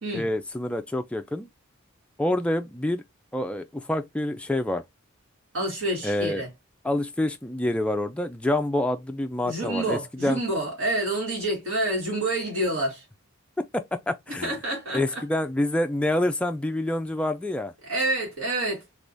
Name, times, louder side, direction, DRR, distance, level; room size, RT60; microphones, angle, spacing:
voice 1, 0.1-1.5 2.2-3.0 3.3-4.8 6.0-6.4 6.8-10.4 13.7-14.5 14.9-17.7, left 1 dB, 5° left, 0.3 m, -27 dB
voice 2, 5.5-6.5 9.4-13.0 14.3-15.0 17.8-18.8, right 1 dB, 70° right, 2.1 m, -28 dB
3.4 x 3.0 x 2.6 m
head